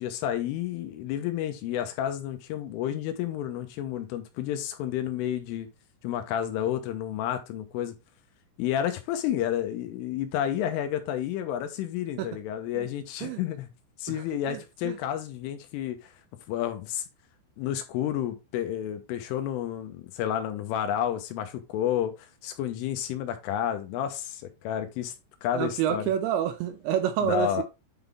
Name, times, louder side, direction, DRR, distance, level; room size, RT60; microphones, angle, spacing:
voice 1, 0.0-5.7 6.0-7.9 8.6-13.7 14.0-16.1 16.5-17.0 17.6-22.1 22.4-25.1 25.4-26.1 27.2-27.6, left 10 dB, 85° left, 3.6 m, -30 dB
voice 2, 14.5-15.0 25.5-27.6, right 10 dB, 80° right, 2.8 m, -28 dB
9.5 x 4.0 x 3.4 m
omnidirectional pair, 5.7 m